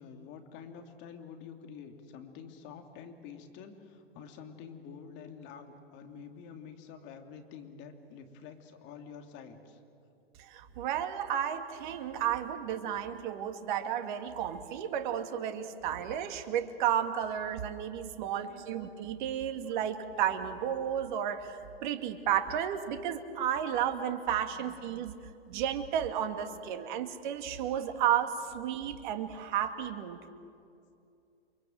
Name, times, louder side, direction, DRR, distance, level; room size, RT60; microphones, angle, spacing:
voice 1, 0.0-9.8 18.1-18.7 24.4-24.8 25.0-25.1 26.4-27.0, left 6 dB, 35° left, 5 dB, 3.0 m, -48 dB
voice 2, 10.4-25.2 25.5-30.2, right 9 dB, 50° right, 8 dB, 2.1 m, -32 dB
29.5 x 23.0 x 7.8 m, 2.6 s
hypercardioid pair, 115°, 32 cm